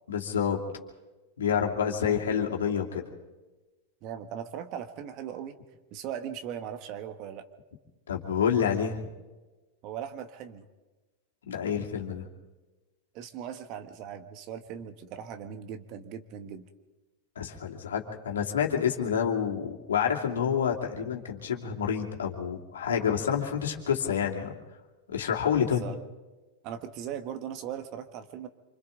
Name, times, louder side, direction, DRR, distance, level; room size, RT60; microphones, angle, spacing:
voice 1, 0.1-0.6 1.4-3.0 8.1-9.0 11.5-12.3 17.4-24.5 25.1-25.8, left 8 dB, 85° left, 0 dB, 2.6 m, -28 dB
voice 2, 1.8-2.2 4.0-5.6 5.9-7.5 9.8-10.7 13.1-16.7 25.6-26.0 26.6-28.5, right 9 dB, 50° right, 8 dB, 1.6 m, -39 dB
26.5 x 25.0 x 3.9 m, 1.2 s
hypercardioid pair, 105°, 0 cm